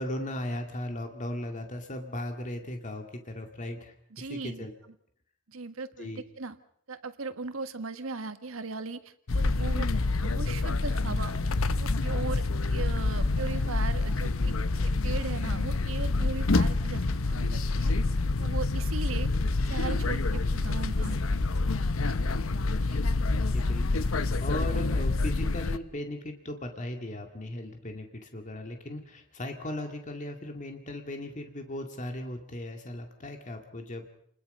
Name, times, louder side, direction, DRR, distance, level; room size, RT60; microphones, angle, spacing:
voice 1, 0.0-4.7 6.0-6.2 23.5-34.1, left 1 dB, 35° left, 4 dB, 2.1 m, -37 dB
voice 2, 4.1-4.7 5.5-6.6 6.9-9.9 10.2-11.4 11.7-12.4 12.7-14.5 14.8-17.9 18.4-19.3 19.7-21.4 22.0-22.1 22.9-23.0, right 4 dB, 85° right, 10 dB, 1.5 m, -38 dB
sound 1, 9.3-25.8, left 3 dB, 85° left, 0.9 m, -27 dB
29.0 x 21.0 x 5.4 m, 0.66 s
head